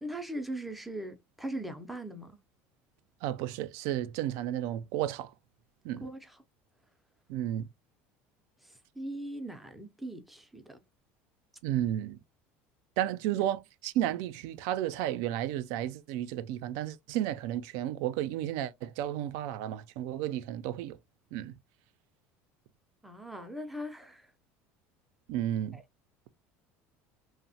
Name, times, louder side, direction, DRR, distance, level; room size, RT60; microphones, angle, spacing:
voice 1, 0.0-2.4 6.0-6.4 8.6-10.8 13.3-13.4 23.0-24.3 25.7-25.8, right 1 dB, ahead, 0.4 m, -40 dB
voice 2, 3.2-5.3 5.8-6.1 7.3-7.7 11.6-12.2 13.0-21.0 21.3-21.5 25.3-25.8, right 12 dB, 70° right, 0.3 m, -32 dB
2.9 x 2.0 x 2.6 m
cardioid pair, 155°, 5 cm